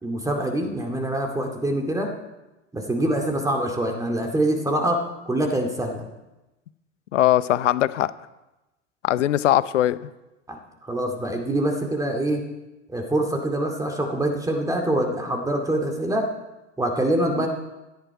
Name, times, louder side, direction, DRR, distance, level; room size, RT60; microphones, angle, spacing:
voice 1, 0.0-2.1 2.7-5.0 5.3-6.1 10.5-12.4 12.9-16.3 16.8-17.5, right 1 dB, 10° right, 2 dB, 2.3 m, -25 dB
voice 2, 7.1-8.1 9.0-10.0 17.4-17.5, left 13 dB, 75° left, 16 dB, 0.8 m, -20 dB
17.0 x 11.0 x 4.8 m, 1.0 s
hypercardioid pair, 95°, 37 cm